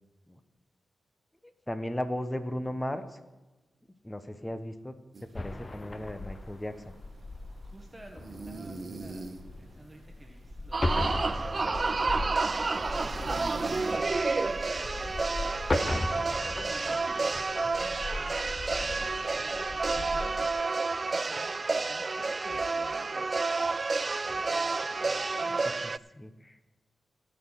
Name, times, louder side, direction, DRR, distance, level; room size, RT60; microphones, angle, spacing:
voice 1, 1.4-3.2 4.0-5.0 5.3-6.9 26.1-26.6, left 1 dB, 10° left, 10 dB, 1.0 m, -36 dB
sound 1, 5.1-15.7, right 3 dB, 60° right, 1.4 m, -47 dB
sound 2, 5.4-20.5, left 2 dB, 35° left, 0.7 m, -37 dB
voice 2, 7.6-9.3 9.6-12.5 12.9-17.3 17.8-20.5 21.1-23.6 24.3-24.7 25.4-25.8, right 1 dB, 15° right, 2 dB, 1.4 m, -54 dB
sound 3, 10.7-26.0, right 3 dB, 40° right, 0.3 m, -30 dB
17.0 x 5.7 x 6.4 m, 1.1 s
cardioid pair, 65°, 0 cm